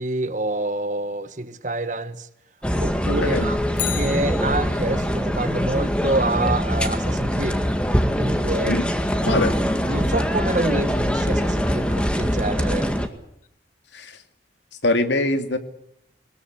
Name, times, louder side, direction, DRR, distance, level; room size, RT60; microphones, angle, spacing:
voice 1, 0.0-2.3 2.8-3.6 3.9-7.6 8.2-8.7 9.3-9.4 9.8-12.9, right 2 dB, 45° right, 1.5 m, -27 dB
sound 1, 2.6-13.1, equal, 5° left, 2.0 m, -23 dB
voice 2, 3.0-3.5 8.7-8.9 9.2-9.5 13.9-14.2 14.8-15.6, left 2 dB, 85° left, 2.7 m, -23 dB
Bicycle, 3.7-5.1 13.4-13.5, left 13 dB, 50° left, 1.2 m, -33 dB
21.5 x 20.5 x 8.1 m
head